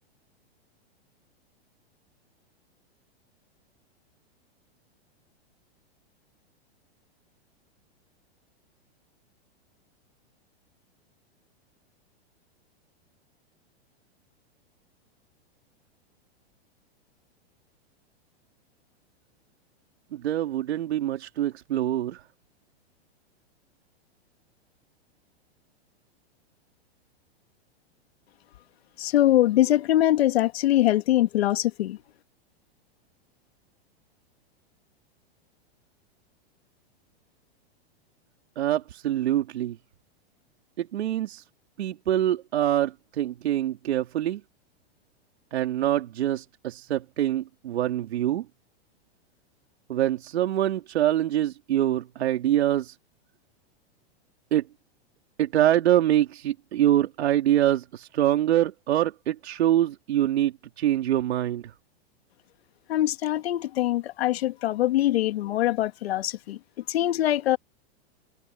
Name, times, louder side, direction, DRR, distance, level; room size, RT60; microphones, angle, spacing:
voice 1, 20.1-22.2 38.6-39.8 40.8-41.4 41.8-44.4 45.5-48.5 49.9-53.0 54.5-54.6 55.4-61.7, right 12 dB, 75° right, 3.1 m, -25 dB
voice 2, 29.0-32.0 62.9-66.6 66.9-67.6, left 14 dB, 70° left, 2.0 m, -23 dB
hypercardioid pair, 130°, 32 cm